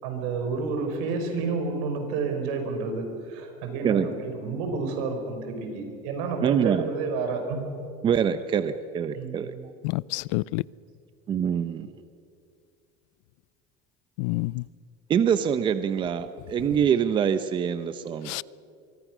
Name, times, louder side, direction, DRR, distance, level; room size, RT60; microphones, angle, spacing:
voice 1, 0.0-7.6 8.4-8.5 9.1-9.7, right 4 dB, 80° right, 5.1 m, -30 dB
voice 2, 6.4-6.9 8.0-9.5 11.3-11.9 15.1-18.3, right 8 dB, 30° right, 0.8 m, -25 dB
voice 3, 9.9-10.6 14.2-14.6 18.3-18.4, left 22 dB, 80° left, 0.5 m, -28 dB
24.5 x 23.5 x 6.3 m
cardioid pair, 145°, 16 cm